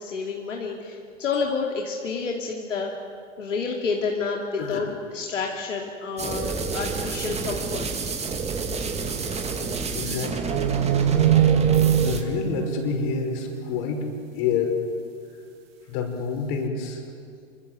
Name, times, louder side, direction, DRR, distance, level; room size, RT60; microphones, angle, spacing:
voice 1, 0.0-2.9 3.4-7.9, left 4 dB, 75° left, 0 dB, 2.9 m, -29 dB
sound 1, 6.2-12.2, right 4 dB, 15° right, 2.8 m, -29 dB
voice 2, 9.9-10.5 12.0-14.8 15.9-17.0, left 5 dB, 50° left, 3 dB, 6.3 m, -28 dB
sound 2, 10.5-13.9, right 10 dB, 50° right, 1.6 m, -22 dB
27.5 x 25.5 x 8.0 m, 2.4 s
figure-of-eight pair, 100°, 37 cm